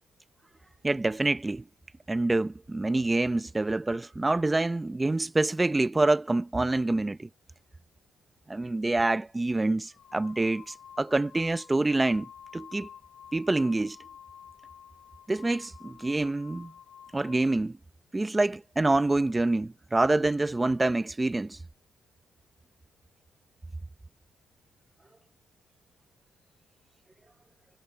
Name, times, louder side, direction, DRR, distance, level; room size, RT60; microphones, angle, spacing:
voice 1, 0.8-1.6 2.1-7.3 8.5-12.3 12.5-12.9 13.3-14.0 15.3-16.7 17.1-17.8 18.1-21.6, right 2 dB, 15° right, 0.8 m, -26 dB
sound 1, 8.8-9.0 9.8-17.5, left 8 dB, 65° left, 2.4 m, -51 dB
cardioid pair, 90°, 0 cm